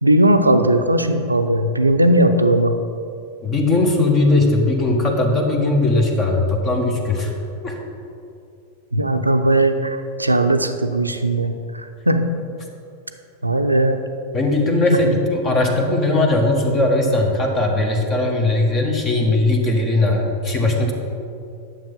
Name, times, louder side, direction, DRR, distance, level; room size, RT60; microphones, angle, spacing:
voice 1, 0.0-2.8 8.9-12.3 13.4-14.0 14.9-15.0, right 1 dB, 85° right, 7 dB, 0.6 m, -18 dB
voice 2, 3.4-7.3 7.6-7.8 14.3-20.9, left 2 dB, 30° left, 1 dB, 1.3 m, -19 dB
9.5 x 6.9 x 5.4 m, 2.5 s
figure-of-eight pair, 90°, 0 cm